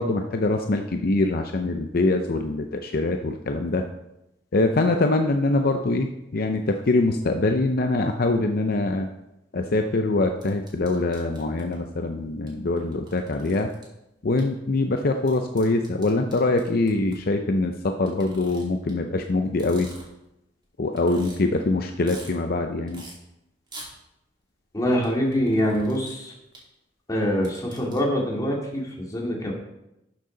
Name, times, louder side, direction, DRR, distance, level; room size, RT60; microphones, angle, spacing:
voice 1, 0.0-3.8 4.5-9.1 9.5-13.7 14.2-19.9 20.8-23.0, left 2 dB, 55° left, 5 dB, 0.6 m, -24 dB
sound 1, 10.4-11.8 12.5-12.6 12.8-13.8 14.4-14.5 15.2-17.2 18.1-18.9 19.5-20.3 20.6-20.7 21.0-21.4 21.8-22.3 22.9-23.1 23.7-23.9 25.0-26.1 26.5-26.6 27.2-28.0, right 2 dB, 25° right, 2.7 m, -45 dB
voice 2, 24.7-26.3 27.1-29.5, equal, 20° left, -2 dB, 2.2 m, -24 dB
12.5 x 6.5 x 3.9 m, 0.89 s
head